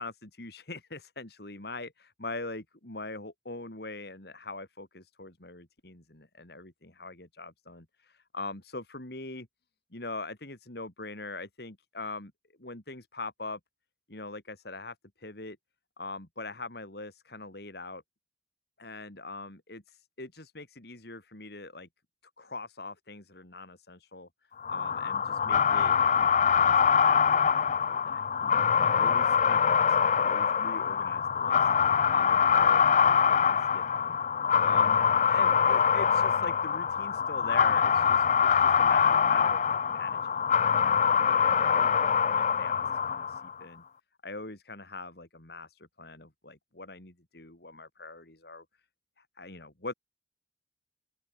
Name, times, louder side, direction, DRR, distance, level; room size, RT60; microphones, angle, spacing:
voice 1, 0.0-9.5 9.9-12.3 12.6-13.6 14.1-15.6 16.0-18.0 18.8-21.9 22.4-24.3 24.7-31.7 32.1-34.2 34.6-35.0 35.3-43.8 44.2-48.6 49.2-49.9, left 3 dB, 60° left, 3.0 m, -42 dB
sound 1, 24.6-43.5, left 7 dB, 40° left, 0.4 m, -24 dB
open air
head